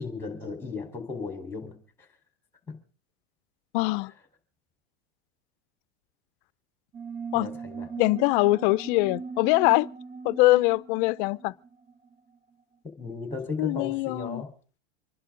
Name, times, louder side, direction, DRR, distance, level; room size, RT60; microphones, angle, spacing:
voice 1, 0.0-1.8 2.7-2.8 7.3-7.9 12.8-14.5, left 4 dB, 10° left, 4.3 m, -35 dB
voice 2, 3.7-4.1 7.3-7.5 8.0-9.9 10.2-11.5 13.6-14.4, left 21 dB, 55° left, 0.6 m, -23 dB
sound 1, 6.9-12.1, right 5 dB, 35° right, 1.5 m, -40 dB
26.0 x 11.0 x 3.9 m
supercardioid pair, 135°, 32 cm